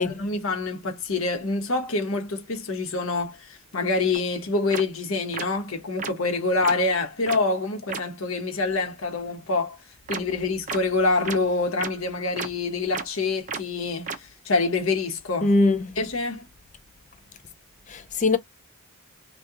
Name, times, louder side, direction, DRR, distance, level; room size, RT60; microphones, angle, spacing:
voice 1, 0.0-9.8 10.1-15.5 16.0-16.5, left 3 dB, 65° left, 1.0 m, -26 dB
sound 1, 4.1-4.2 4.7-4.8 5.3-5.4 6.0-6.1 6.6-6.7 7.3-7.4 7.9-8.0 10.1-10.2 10.7-10.8 11.2-11.4 11.8-11.9 12.4-12.5 12.9-13.0 13.5-13.6 14.1-14.2, right 5 dB, 35° right, 0.5 m, -31 dB
voice 2, 15.4-15.8 17.9-18.4, left 2 dB, 35° left, 0.4 m, -20 dB
2.8 x 2.4 x 3.5 m
head